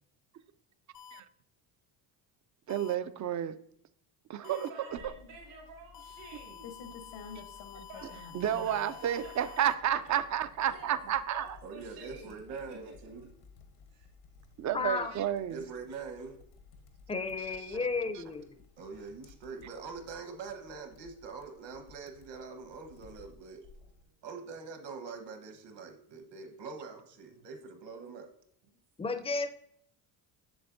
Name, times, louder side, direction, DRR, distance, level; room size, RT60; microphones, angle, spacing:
sound 1, 0.9-1.2 2.7-2.9 4.4-4.7 5.9-9.7, left 9 dB, 60° left, 0.6 m, -50 dB
voice 1, 2.7-3.5 4.3-4.7 8.3-11.5 14.6-15.6, right 10 dB, 40° right, 0.4 m, -31 dB
voice 2, 4.4-6.7 7.9-9.5 10.7-13.1 13.9-14.1 27.3-27.5, right 3 dB, 80° right, 2.3 m, -50 dB
sound 2, 4.9-24.0, left 6 dB, 80° left, 1.2 m, -54 dB
voice 3, 11.6-13.3 15.5-16.4 17.7-17.9 18.8-23.7 24.2-28.3, right 4 dB, 60° right, 1.3 m, -44 dB
voice 4, 14.7-15.1 17.1-18.4 29.0-29.5, left 4 dB, 15° left, 0.5 m, -32 dB
7.9 x 6.8 x 2.6 m
supercardioid pair, 80°, 48 cm